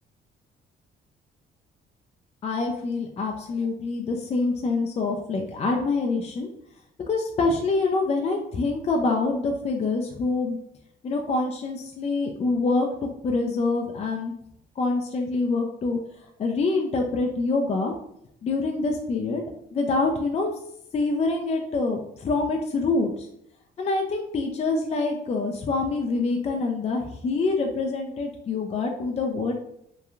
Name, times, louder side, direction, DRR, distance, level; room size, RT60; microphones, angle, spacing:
voice 1, 2.4-6.5 7.1-10.6 11.0-14.3 14.8-16.0 16.4-17.9 18.4-19.4 19.7-20.5 20.9-23.3 23.8-29.5, left 3 dB, 35° left, 2 dB, 0.4 m, -26 dB
2.9 x 2.2 x 2.4 m, 0.73 s
cardioid pair, 90°, 20 cm